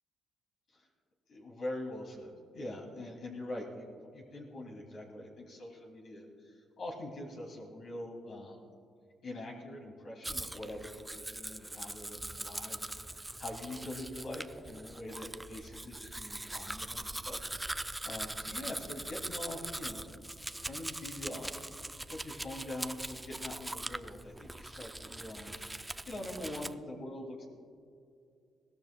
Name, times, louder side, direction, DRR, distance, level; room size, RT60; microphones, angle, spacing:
voice 1, 1.3-3.9 4.1-8.7 9.2-20.0 20.6-27.5, left 1 dB, 60° left, -1 dB, 2.6 m, -44 dB
Domestic sounds home sounds, 10.2-26.7, right 1 dB, 10° right, 0.4 m, -42 dB
22.0 x 17.5 x 2.2 m, 2.4 s
cardioid pair, 90°, 0 cm